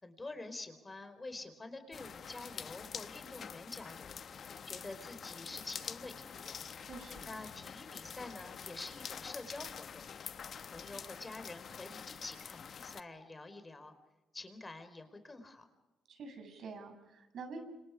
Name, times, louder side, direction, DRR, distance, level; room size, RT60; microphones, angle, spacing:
voice 1, 0.0-4.2 4.7-6.7 7.3-10.1 10.7-13.9 14.3-15.7, left 2 dB, 20° left, 9 dB, 4.5 m, -47 dB
sound 1, 1.9-13.0, left 7 dB, 55° left, 1.0 m, -46 dB
voice 2, 6.8-7.3 16.1-17.6, right 4 dB, 65° right, 5 dB, 7.4 m, -47 dB
29.0 x 26.5 x 4.9 m, 1.1 s
cardioid pair, 90°, 0 cm